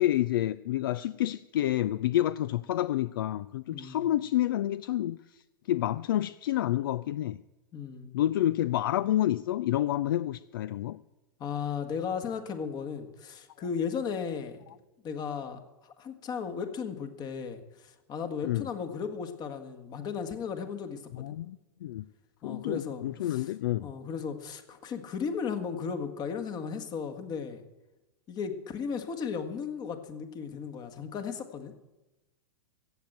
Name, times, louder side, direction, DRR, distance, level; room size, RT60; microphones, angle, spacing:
voice 1, 0.0-5.2 5.7-7.4 8.1-11.0 18.4-18.7 21.1-22.0 22.4-23.9, left 13 dB, 65° left, 18 dB, 0.4 m, -29 dB
voice 2, 3.7-4.0 7.7-8.2 11.4-14.6 15.0-15.6 16.0-21.3 22.4-23.5 23.8-27.6 28.3-31.7, left 6 dB, 30° left, 8 dB, 1.7 m, -35 dB
15.0 x 7.9 x 8.7 m, 1.0 s
hypercardioid pair, 105°, 13 cm